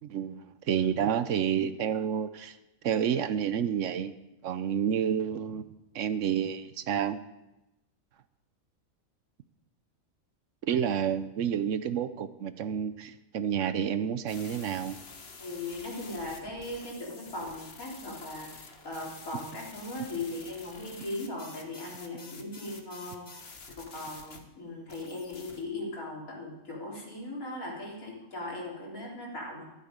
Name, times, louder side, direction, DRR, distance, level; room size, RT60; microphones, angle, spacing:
voice 1, 0.0-2.6 2.8-4.1 4.4-7.2 10.7-15.0, right 8 dB, 70° right, 13 dB, 1.0 m, -29 dB
sound 1, 14.3-24.4 24.9-25.6, left 4 dB, 50° left, 1.4 m, -48 dB
voice 2, 15.4-29.6, left 2 dB, 85° left, -4 dB, 3.7 m, -39 dB
12.0 x 12.0 x 5.1 m, 0.95 s
omnidirectional pair, 1.4 m